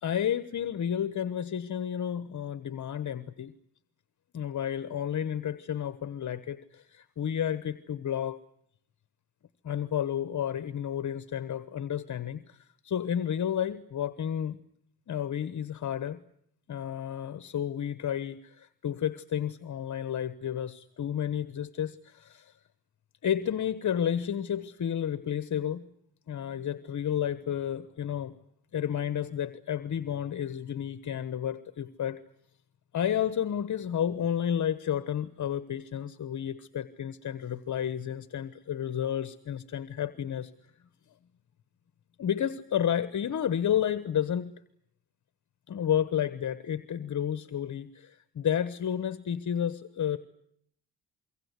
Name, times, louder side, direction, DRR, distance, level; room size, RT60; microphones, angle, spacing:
voice 1, 0.0-3.5 4.3-8.4 9.6-14.6 15.1-16.2 16.7-22.5 23.2-25.9 26.3-28.3 28.7-32.2 32.9-40.5 42.2-44.5 45.7-50.2, left 9 dB, 50° left, 13 dB, 1.2 m, -31 dB
26.0 x 23.5 x 8.2 m, 0.70 s
cardioid pair, 110°, 37 cm